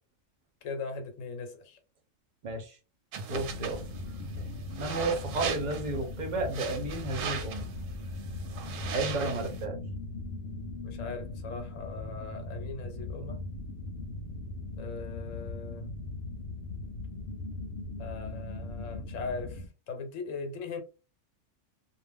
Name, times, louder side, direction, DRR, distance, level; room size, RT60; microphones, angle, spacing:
voice 1, 0.6-1.8 10.8-13.4 14.8-15.9 18.0-20.8, left 4 dB, 75° left, 1.1 m, -39 dB
voice 2, 2.4-2.8 3.3-3.8 4.8-7.7 8.9-9.8, right 2 dB, 45° right, 0.6 m, -32 dB
sound 1, 3.1-9.6, right 7 dB, 85° right, 1.0 m, -39 dB
sound 2, 3.3-19.7, left 2 dB, 60° left, 0.7 m, -39 dB
2.4 x 2.0 x 3.4 m
omnidirectional pair, 1.4 m